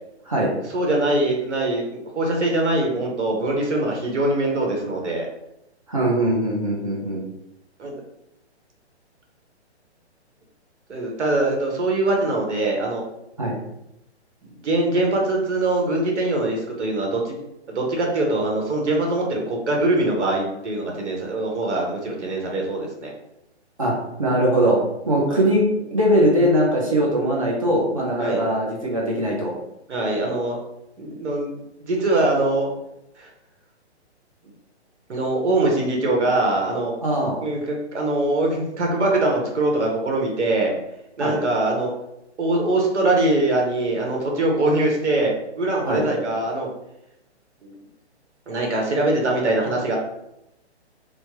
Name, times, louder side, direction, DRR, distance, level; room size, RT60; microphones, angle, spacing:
voice 1, 0.7-5.3 7.8-7.9 10.9-13.0 14.4-17.4 17.7-23.1 25.3-25.4 28.2-28.4 29.9-30.6 31.0-31.6 31.9-32.7 33.2-33.3 35.1-36.9 37.4-40.7 41.2-41.9 42.4-46.7 47.6-47.7 48.5-50.0, right 2 dB, 85° right, 0 dB, 1.1 m, -22 dB
voice 2, 5.9-7.2 13.4-13.6 23.8-24.8 25.1-29.5 37.0-37.4 41.2-41.4 45.9-46.1, right 1 dB, 30° right, -3 dB, 0.5 m, -21 dB
3.2 x 2.1 x 3.0 m, 0.85 s
hypercardioid pair, 175°, 34 cm